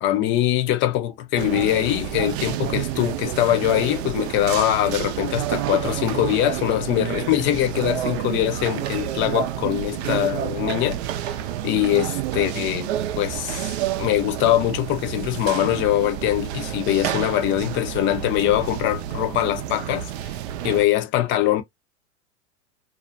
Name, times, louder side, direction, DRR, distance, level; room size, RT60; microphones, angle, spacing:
voice 1, 0.0-11.4 11.6-12.9 13.2-20.1 20.6-21.6, left 13 dB, 35° left, 0.5 m, -23 dB
sound 1, 1.4-20.9, right 11 dB, 65° right, 0.5 m, -29 dB
2.4 x 2.0 x 2.5 m
hypercardioid pair, 105°, 36 cm